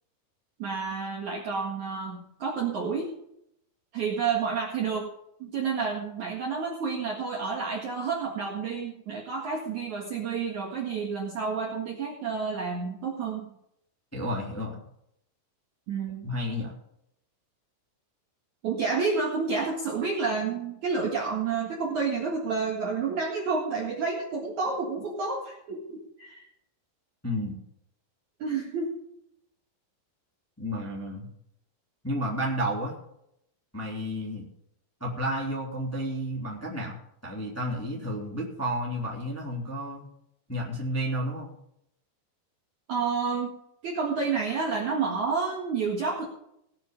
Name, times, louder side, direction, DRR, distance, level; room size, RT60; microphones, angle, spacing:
voice 1, 0.6-3.1 3.9-5.1 5.4-13.4 15.9-16.3 18.6-26.5 28.4-29.0 42.9-43.5 43.8-46.3, right 5 dB, 50° right, -2 dB, 2.5 m, -30 dB
voice 2, 14.1-14.8 16.2-16.7 27.2-27.6 30.6-31.3 32.0-32.9 33.7-34.4 35.0-37.0 37.2-40.0 40.5-41.5, equal, 5° left, -3 dB, 2.5 m, -31 dB
18.5 x 8.1 x 5.3 m, 0.75 s
omnidirectional pair, 5.4 m